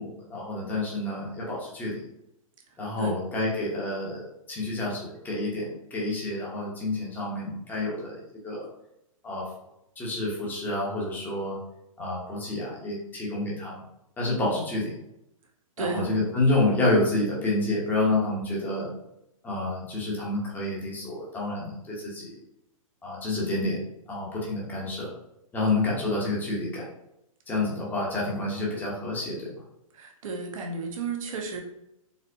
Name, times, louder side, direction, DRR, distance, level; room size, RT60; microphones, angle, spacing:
voice 1, 0.0-2.0 2.8-8.7 9.2-9.5 10.0-11.6 12.0-13.8 14.2-14.9 15.8-18.9 19.4-22.3 23.0-23.8 24.1-25.1 25.5-26.9 27.5-29.5, left 2 dB, 10° left, -4 dB, 0.8 m, -28 dB
voice 2, 15.8-16.2 29.9-31.6, right 4 dB, 65° right, 2 dB, 0.8 m, -33 dB
4.2 x 2.0 x 2.6 m, 0.83 s
hypercardioid pair, 145°, 18 cm